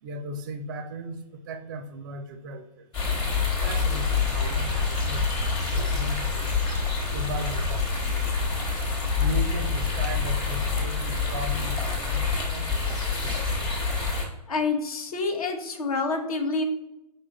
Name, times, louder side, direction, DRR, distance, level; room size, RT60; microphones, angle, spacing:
voice 1, 0.0-2.9 3.4-6.5 7.1-8.2 9.2-12.7 13.0-13.4, right 1 dB, 30° right, 9 dB, 0.4 m, -37 dB
sound 1, 2.9-14.2, left 4 dB, 20° left, 1.0 m, -26 dB
voice 2, 14.5-16.6, left 3 dB, 60° left, 5 dB, 0.9 m, -27 dB
5.1 x 3.6 x 2.8 m, 0.90 s
figure-of-eight pair, 120°, 21 cm